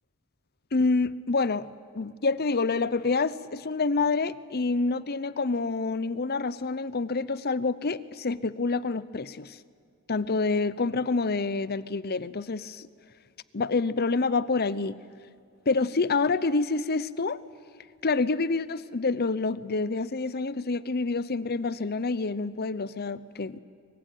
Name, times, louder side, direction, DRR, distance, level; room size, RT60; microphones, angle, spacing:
voice 1, 0.7-1.7 1.9-9.6 10.1-12.9 13.5-15.0 15.7-17.4 18.0-23.6, left 3 dB, 45° left, 17 dB, 0.8 m, -27 dB
25.0 x 22.5 x 9.3 m, 2.3 s
head